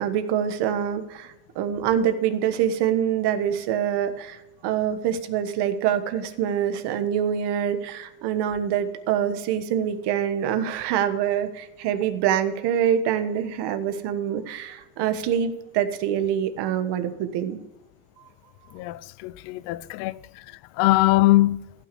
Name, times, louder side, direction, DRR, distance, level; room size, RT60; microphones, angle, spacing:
voice 1, 0.0-17.6, right 9 dB, 70° right, 1.4 m, -25 dB
voice 2, 18.7-20.2 20.8-21.6, left 18 dB, 90° left, 0.6 m, -21 dB
15.5 x 6.1 x 6.8 m
cardioid pair, 125°, 41 cm